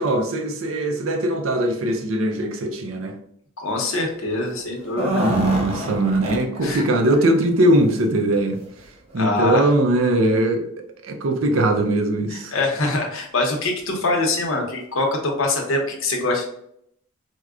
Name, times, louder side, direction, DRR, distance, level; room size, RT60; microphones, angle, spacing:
voice 1, 0.0-3.2 5.1-8.6 9.1-10.6 11.0-12.5, right 1 dB, 80° right, 4 dB, 0.5 m, -20 dB
voice 2, 3.6-5.2 6.6-6.8 9.2-9.7 12.3-16.4, left 2 dB, 75° left, 1 dB, 0.8 m, -24 dB
sound 1, 4.8-6.8 7.1-7.2 7.6-7.8 8.7-8.8 9.1-9.2, equal, 30° right, 0.7 m, -26 dB
4.5 x 2.1 x 2.4 m, 0.70 s
head